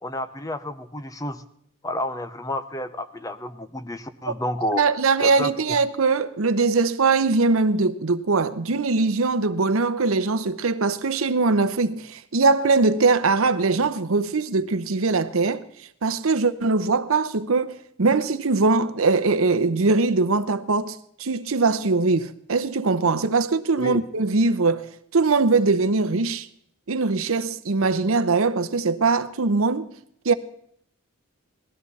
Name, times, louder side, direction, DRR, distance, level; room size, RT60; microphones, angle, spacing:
voice 1, 0.0-1.4 1.8-4.8 5.2-5.8 23.8-24.0, left 1 dB, 15° left, 0.6 m, -30 dB
voice 2, 4.7-15.6 16.0-26.5 26.9-29.9 30.2-30.3, right 3 dB, 80° right, 0.8 m, -21 dB
18.5 x 13.0 x 4.2 m
head